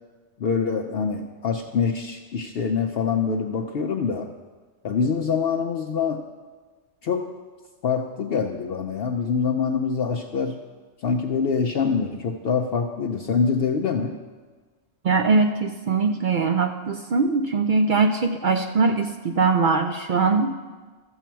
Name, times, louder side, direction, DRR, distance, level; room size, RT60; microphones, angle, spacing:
voice 1, 0.4-4.3 4.8-6.2 7.0-7.3 7.8-10.6 11.0-14.2, left 5 dB, 60° left, 3 dB, 0.7 m, -25 dB
voice 2, 15.0-20.5, right 4 dB, 60° right, 5 dB, 0.5 m, -21 dB
13.0 x 7.2 x 4.5 m, 1.4 s
omnidirectional pair, 1.3 m